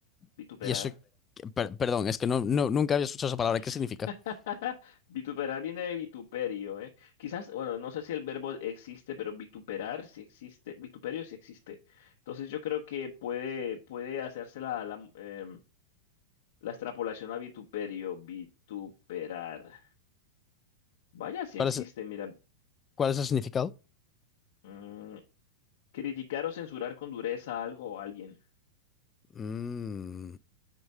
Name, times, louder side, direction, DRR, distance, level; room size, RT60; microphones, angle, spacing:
voice 1, 0.6-0.9 1.4-4.1 21.6-21.8 23.0-23.7 29.4-30.4, left 7 dB, 20° left, 0.3 m, -29 dB
voice 2, 4.3-15.6 16.6-19.8 21.1-22.3 24.6-25.2 25.9-28.4, left 9 dB, 70° left, 1.0 m, -37 dB
4.9 x 4.7 x 5.4 m
supercardioid pair, 135°, 0 cm